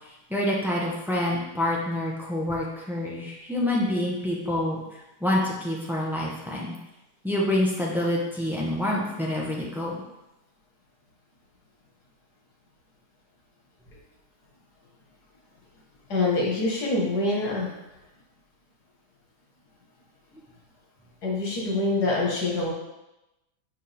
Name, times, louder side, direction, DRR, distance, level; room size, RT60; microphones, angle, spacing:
voice 1, 0.3-4.8 5.2-6.7 7.2-9.9, left 1 dB, ahead, -4 dB, 0.9 m, -27 dB
voice 2, 16.1-17.7 21.2-22.7, left 2 dB, 90° left, -3 dB, 2.2 m, -25 dB
7.0 x 4.9 x 3.5 m, 0.95 s
omnidirectional pair, 1.7 m